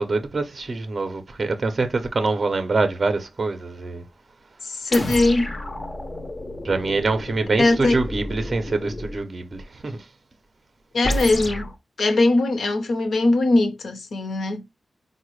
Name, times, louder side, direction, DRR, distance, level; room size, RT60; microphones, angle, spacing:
voice 1, 0.0-4.0 6.6-10.0, right 3 dB, 35° right, 0.5 m, -25 dB
voice 2, 4.6-5.5 7.6-7.9 10.9-11.7 12.0-14.6, left 2 dB, 70° left, 0.7 m, -20 dB
sound 1, 4.9-9.2 11.0-11.7, left 1 dB, 25° left, 0.5 m, -30 dB
4.7 x 2.1 x 3.0 m
wide cardioid pair, 165°, 0 cm